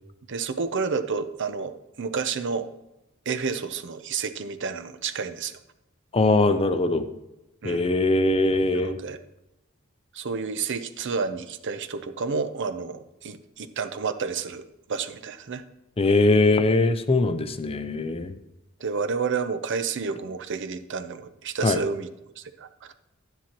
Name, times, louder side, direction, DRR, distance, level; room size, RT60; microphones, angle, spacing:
voice 1, 0.3-1.7 2.0-2.7 3.3-5.6 7.6-7.9 8.7-9.2 10.1-15.6 18.8-22.1 22.4-22.9, right 5 dB, 60° right, 10 dB, 0.6 m, -30 dB
voice 2, 6.1-7.1 7.6-9.0 16.0-18.3 21.6-21.8, left 2 dB, 25° left, 10 dB, 0.5 m, -21 dB
11.0 x 10.0 x 3.0 m, 0.94 s
head